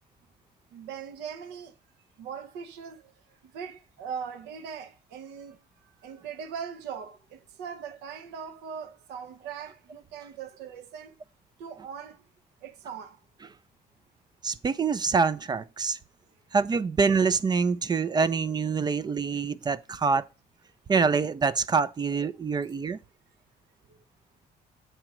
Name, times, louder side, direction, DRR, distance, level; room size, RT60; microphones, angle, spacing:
voice 1, 0.7-1.7 2.2-3.1 3.4-5.6 6.0-11.2 11.6-12.2 12.6-13.2 22.6-22.9 23.9-24.0, right 7 dB, 85° right, 0.8 m, -40 dB
voice 2, 14.4-16.0 16.5-20.3 20.9-23.0, right 5 dB, 25° right, 0.4 m, -25 dB
7.8 x 2.9 x 5.9 m
cardioid pair, 110°, 17 cm